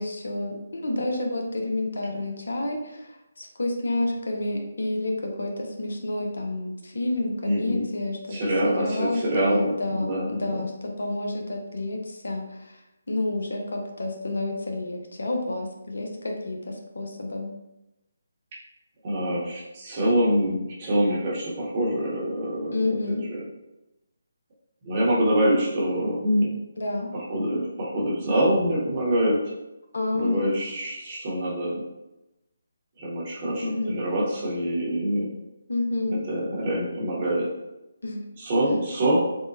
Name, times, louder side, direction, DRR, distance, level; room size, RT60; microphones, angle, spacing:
voice 1, 0.0-8.4 8.6-12.8 13.1-17.5 22.7-23.3 26.8-27.1 29.9-30.5 33.6-33.9 35.7-36.2 38.0-38.2, left 2 dB, 70° left, 2 dB, 0.6 m, -29 dB
voice 2, 7.4-7.8 8.3-10.6 19.0-23.4 24.8-26.5 27.1-29.4 30.1-31.8 33.0-35.3 36.1-37.5 38.4-39.2, right 1 dB, 35° right, -4 dB, 1.0 m, -25 dB
3.5 x 2.1 x 2.6 m, 0.95 s
figure-of-eight pair, 150°, 0 cm